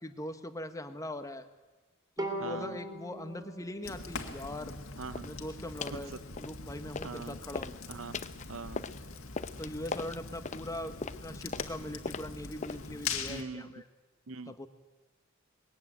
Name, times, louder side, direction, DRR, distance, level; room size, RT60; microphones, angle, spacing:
voice 1, 0.0-1.5 2.2-4.8 5.2-6.1 6.4-7.7 9.6-13.8 14.5-14.7, left 1 dB, 15° left, 9 dB, 1.2 m, -41 dB
Bowed string instrument, 2.2-5.5, right 1 dB, 20° right, 3.1 m, -41 dB
voice 2, 2.4-2.8 5.0-5.3 5.9-6.2 7.0-7.4 7.9-8.8 13.3-13.7 14.3-14.7, right 4 dB, 70° right, 15 dB, 0.7 m, -43 dB
Fire, 3.8-13.4, left 5 dB, 75° left, 1.9 m, -42 dB
sound 1, 5.1-5.4 5.8-6.1 6.4-7.2 7.5-13.0, left 4 dB, 35° left, 0.7 m, -40 dB
21.0 x 16.0 x 9.2 m, 1.2 s
head